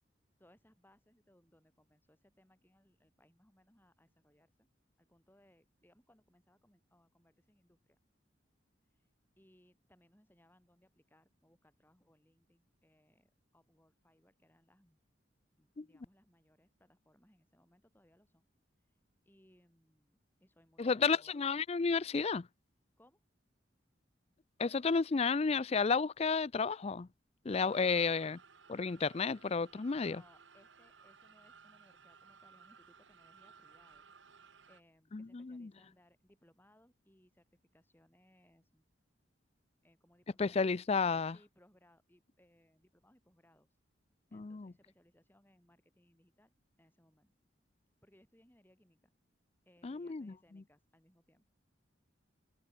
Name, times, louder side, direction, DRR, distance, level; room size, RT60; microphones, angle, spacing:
voice 1, 0.4-4.7 5.0-8.0 8.9-9.1 9.4-15.0 15.6-18.5 19.2-21.3 23.0-23.2 29.8-34.0 34.7-37.5 37.7-38.9 39.8-40.9 41.3-43.7 44.3-47.3 48.0-49.1 49.7-51.5, left 1 dB, 10° left, 7.6 m, -68 dB
voice 2, 20.8-22.5 24.6-27.1 27.5-28.4 28.7-30.2 35.1-35.7 40.4-41.4 44.3-44.7 49.8-50.3, left 5 dB, 35° left, 0.4 m, -32 dB
sound 1, 27.5-34.8, right 5 dB, 70° right, 1.8 m, -60 dB
head